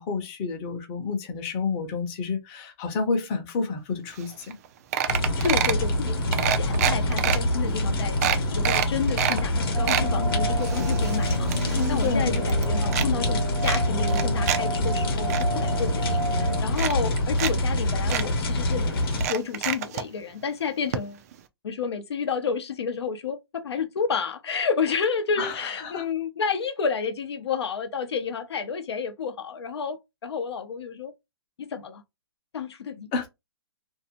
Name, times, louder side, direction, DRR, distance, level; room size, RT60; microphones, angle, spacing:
voice 1, 0.0-4.5 11.7-12.3 25.4-26.0 33.1-33.3, left 4 dB, 30° left, 0.7 m, -29 dB
sound 1, 4.2-4.3 4.5-4.7 4.9-5.8 6.3-7.4 7.8-7.9 8.2-9.4 9.7-10.1 10.6-12.1 12.4-13.1 13.6-14.6 14.9-15.4 16.2-16.3 16.7-17.5 17.8-17.9 18.1-18.3 19.1-20.0 20.9-21.0 21.3-21.4, right 10 dB, 40° right, 0.3 m, -27 dB
sound 2, 5.1-19.3, left 1 dB, 60° left, 0.9 m, -25 dB
voice 2, 5.4-6.3 6.6-18.9 19.3-21.2 21.6-31.1 31.6-32.0 32.5-33.1, left 6 dB, 80° left, 0.6 m, -30 dB
sound 3, 9.7-16.6, right 2 dB, 70° right, 0.9 m, -32 dB
2.6 x 2.1 x 2.8 m
hypercardioid pair, 150°, 14 cm